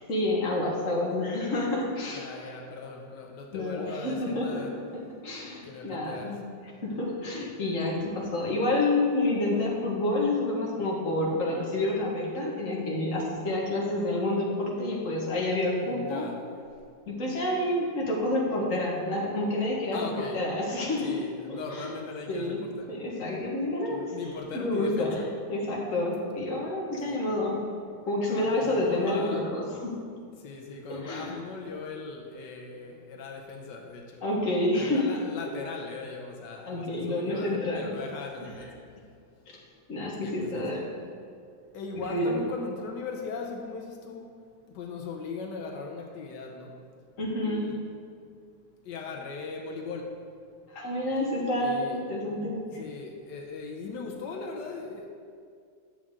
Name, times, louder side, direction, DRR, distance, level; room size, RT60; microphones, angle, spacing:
voice 1, 0.1-2.2 3.5-4.7 4.9-6.4 6.8-16.3 17.1-21.2 21.5-21.9 22.3-22.6 22.9-24.1 24.5-25.2 25.5-27.6 28.1-30.0 30.9-31.4 34.2-35.1 36.7-37.9 39.9-40.9 42.1-42.4 47.2-47.7 50.7-52.8, left 1 dB, 50° left, -3 dB, 1.9 m, -29 dB
voice 2, 2.1-4.7 5.6-6.4 15.8-16.4 19.9-20.4 21.0-23.0 23.9-25.3 27.1-27.2 28.4-29.4 30.4-34.2 34.8-38.7 40.2-40.9 41.7-44.3 44.7-46.8 47.4-47.8 48.8-50.2 51.6-52.0 52.7-55.1, left 4 dB, 90° left, 1 dB, 1.5 m, -39 dB
11.0 x 7.3 x 3.7 m, 2.3 s
omnidirectional pair, 1.8 m